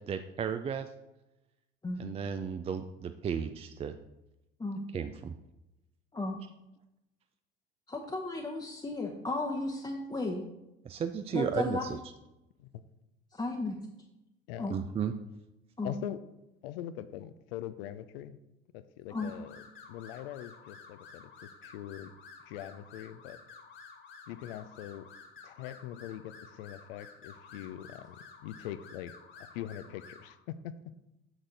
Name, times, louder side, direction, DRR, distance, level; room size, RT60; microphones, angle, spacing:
voice 1, 0.1-0.9 2.0-3.9 4.9-5.3 10.9-11.8 14.7-15.1, right 7 dB, 20° right, 9 dB, 0.3 m, -33 dB
voice 2, 7.9-10.4 11.3-11.9 13.3-13.7 14.6-14.7 15.8-15.9 19.1-19.3, left 2 dB, 15° left, -2 dB, 0.8 m, -34 dB
voice 3, 15.8-16.2 16.6-18.4 18.7-19.6 19.9-22.1 22.5-23.4 24.3-25.1 25.4-29.1 29.5-30.7, left 12 dB, 70° left, 12 dB, 0.5 m, -42 dB
sound 1, 19.1-30.3, left 5 dB, 40° left, 1.6 m, -52 dB
6.3 x 6.1 x 3.9 m, 0.93 s
hypercardioid pair, 60°, 30 cm